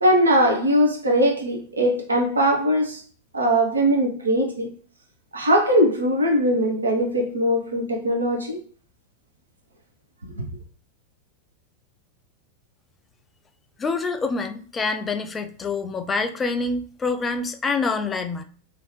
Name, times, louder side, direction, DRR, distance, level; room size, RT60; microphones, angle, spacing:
voice 1, 0.0-3.0 3.3-4.7 5.3-8.6 10.4-10.5, equal, 75° right, 0.7 m, -20 dB
voice 2, 13.8-18.4, left 4 dB, 20° left, 0.4 m, -26 dB
2.9 x 2.5 x 3.0 m
figure-of-eight pair, 90°, 0 cm